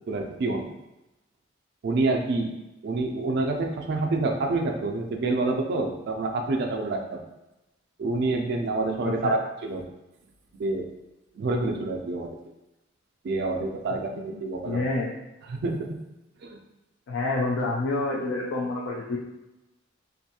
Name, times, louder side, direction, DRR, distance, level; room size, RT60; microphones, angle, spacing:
voice 1, 0.1-0.7 1.8-2.5 2.8-7.2 8.0-9.9 10.6-10.9 11.3-12.4 13.2-14.8 15.5-16.0 16.4-16.6, right 2 dB, 55° right, 3 dB, 0.3 m, -27 dB
voice 2, 9.0-9.4 14.2-15.1 17.1-19.2, left 2 dB, 85° left, -3 dB, 0.4 m, -28 dB
2.5 x 2.2 x 2.7 m, 0.97 s
head